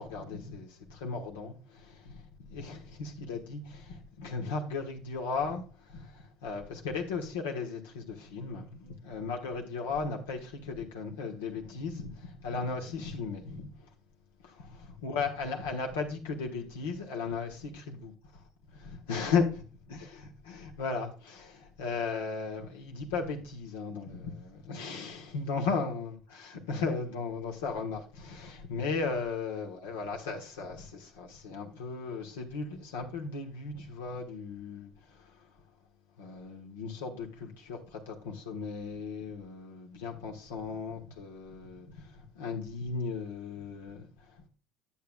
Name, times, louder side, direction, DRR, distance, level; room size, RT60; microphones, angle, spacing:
voice 1, 0.0-13.9 14.4-35.6 36.2-44.5, left 4 dB, 85° left, 1.3 m, -36 dB
10.0 x 7.4 x 2.3 m
hypercardioid pair, 70°, 0 cm